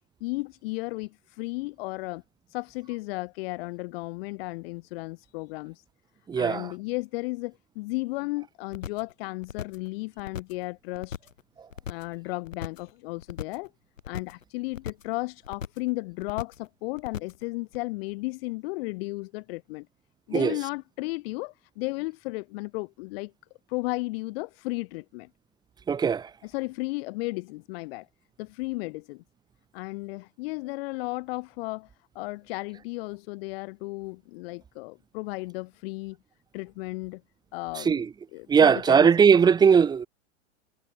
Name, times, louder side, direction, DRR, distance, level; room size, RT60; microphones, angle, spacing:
voice 1, 0.2-2.2 2.5-5.8 6.4-11.2 11.9-13.7 14.1-19.9 20.3-23.3 23.7-25.3 26.4-28.1 28.4-29.2 29.7-31.9 32.1-36.2 36.5-37.2 37.5-38.0 38.3-39.3, left 24 dB, 50° left, 2.9 m, -34 dB
voice 2, 6.3-6.7 20.3-20.6 25.9-26.3 37.8-38.1 38.5-40.1, right 6 dB, 10° right, 0.7 m, -19 dB
sound 1, 8.7-9.1 9.4-9.9 10.2-10.6 10.9-11.4 11.7-12.2 12.5-12.9 13.2-13.7 14.0-14.4 14.7-15.1 15.4-15.9 16.2-16.7 17.0-17.4 17.7-17.8, left 8 dB, 75° left, 6.0 m, -38 dB
hypercardioid pair, 110°, 39 cm